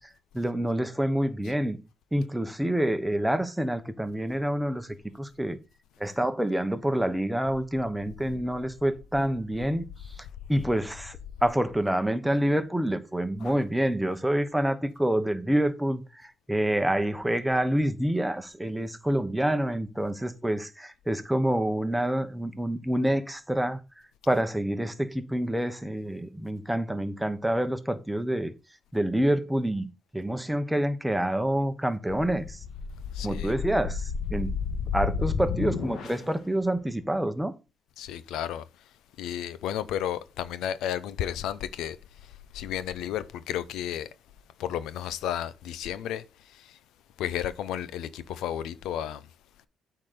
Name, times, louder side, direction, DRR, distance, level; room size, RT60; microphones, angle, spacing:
voice 1, 0.3-1.8 2.1-5.6 6.0-9.9 10.5-23.8 24.3-28.5 28.9-32.6 33.2-34.5 34.9-37.5, right 1 dB, 5° right, 1.1 m, -27 dB
sound 1, 32.1-36.4, left 5 dB, 65° left, 1.7 m, -32 dB
voice 2, 33.1-33.6 38.0-38.6 39.2-42.0 42.5-44.1 44.6-46.2 46.6-46.7 47.2-49.2, left 10 dB, 85° left, 0.6 m, -32 dB
8.4 x 3.9 x 6.7 m
cardioid pair, 90°, 0 cm